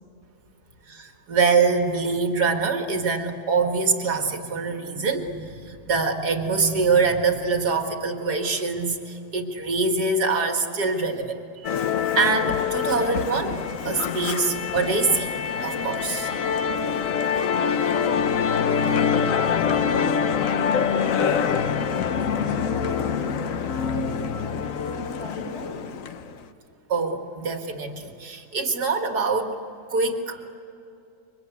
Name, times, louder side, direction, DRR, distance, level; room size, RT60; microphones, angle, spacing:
voice 1, 0.9-11.4 11.6-11.7 12.2-16.3 26.9-29.6 29.9-30.5, right 4 dB, 80° right, 4 dB, 2.5 m, -24 dB
Musical instrument, 11.6-26.3, left 7 dB, 60° left, 1.2 m, -25 dB
voice 2, 18.0-18.9 20.7-23.3 23.9-26.0, left 2 dB, 90° left, -1 dB, 7.5 m, -38 dB
28.0 x 24.5 x 8.2 m, 2.8 s
omnidirectional pair, 1.7 m